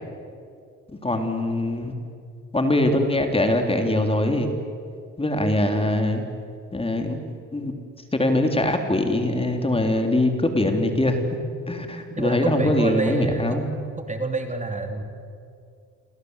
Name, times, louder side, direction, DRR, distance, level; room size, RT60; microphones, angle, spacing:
voice 1, 1.0-2.0 2.5-4.6 5.2-6.2 6.7-7.2 7.5-7.7 8.1-11.2 11.7-13.7, left 1 dB, 20° left, 5 dB, 3.5 m, -22 dB
voice 2, 12.1-15.0, right 3 dB, 25° right, 5 dB, 3.4 m, -28 dB
29.5 x 24.5 x 8.2 m, 2.4 s
cardioid pair, 90°, 30 cm